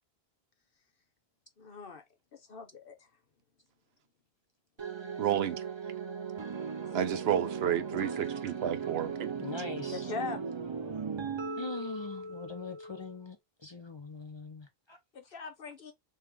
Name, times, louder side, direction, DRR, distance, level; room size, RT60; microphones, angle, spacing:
voice 1, 1.6-2.0 2.3-3.1 9.9-10.4 15.1-15.9, left 5 dB, 65° left, 1.1 m, -41 dB
sound 1, 4.8-13.2, right 5 dB, 35° right, 0.5 m, -38 dB
voice 2, 5.2-5.6 6.9-9.3, right 10 dB, 85° right, 0.9 m, -31 dB
voice 3, 9.4-10.1 11.6-15.0, left 3 dB, 40° left, 0.4 m, -42 dB
3.3 x 3.1 x 3.5 m
omnidirectional pair, 1.0 m